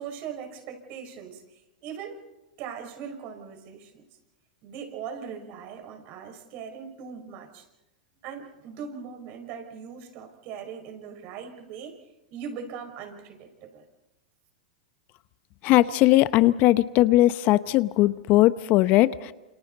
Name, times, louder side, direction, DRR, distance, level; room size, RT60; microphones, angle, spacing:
voice 1, 0.0-1.4 1.8-2.2 2.6-4.1 4.6-7.6 8.2-12.0 12.3-13.8, right 7 dB, 50° right, 5 dB, 5.8 m, -40 dB
voice 2, 15.6-19.3, left 16 dB, 45° left, 15 dB, 0.8 m, -19 dB
29.5 x 28.0 x 4.1 m, 0.96 s
hypercardioid pair, 100°, 4 cm